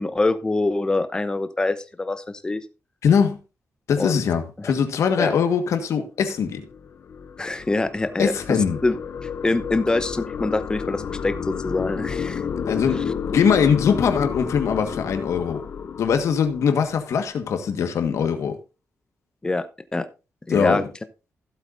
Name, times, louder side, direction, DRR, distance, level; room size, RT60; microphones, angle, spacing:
voice 1, 0.0-2.6 4.0-4.2 4.6-4.7 5.2-5.3 7.4-8.3 8.8-12.4 19.4-19.7 19.9-20.1 20.5-20.8, left 2 dB, 15° left, 0.8 m, -24 dB
voice 2, 3.0-3.4 3.9-6.6 8.2-8.8 12.7-15.6 16.0-18.6 20.5-20.8, left 7 dB, 80° left, 1.5 m, -21 dB
sound 1, 6.4-17.1, left 7 dB, 50° left, 0.7 m, -31 dB
15.5 x 8.1 x 2.6 m
wide cardioid pair, 160°, 5 cm